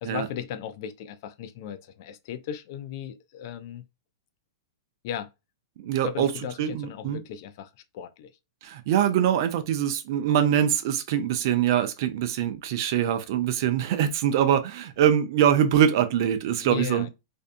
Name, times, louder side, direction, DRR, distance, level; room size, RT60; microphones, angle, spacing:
voice 1, 0.0-3.8 5.0-5.3 6.0-8.3 16.6-17.1, left 9 dB, 55° left, 0.4 m, -36 dB
voice 2, 5.8-6.3 6.6-7.2 8.6-17.1, right 9 dB, 55° right, 0.5 m, -23 dB
2.6 x 2.2 x 2.5 m
hypercardioid pair, 130°, 2 cm